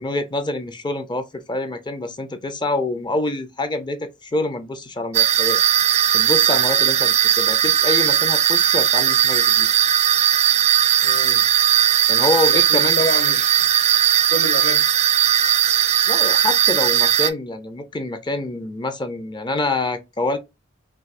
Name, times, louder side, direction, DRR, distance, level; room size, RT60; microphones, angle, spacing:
voice 1, 0.0-5.6 6.1-9.7 12.1-13.0 16.1-20.4, left 2 dB, 25° left, 0.5 m, -26 dB
sound 1, 5.1-17.3, right 10 dB, 35° right, 0.3 m, -17 dB
voice 2, 11.0-11.5 12.4-13.7 14.1-14.8, left 1 dB, 50° left, 0.8 m, -28 dB
4.5 x 2.6 x 2.4 m
head